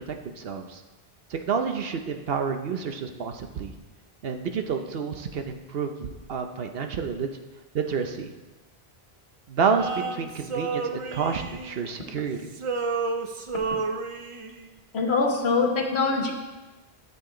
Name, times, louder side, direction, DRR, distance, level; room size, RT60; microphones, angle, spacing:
voice 1, 0.1-0.8 1.3-3.7 4.2-7.3 7.7-8.3 9.5-12.5, right 6 dB, 65° right, 6 dB, 1.0 m, -29 dB
Male singing, 9.8-12.2 12.5-14.7, right 4 dB, 40° right, 0.5 m, -31 dB
voice 2, 14.9-16.3, left 4 dB, 80° left, 3 dB, 1.4 m, -23 dB
12.0 x 7.0 x 3.8 m, 1.2 s
omnidirectional pair, 1.1 m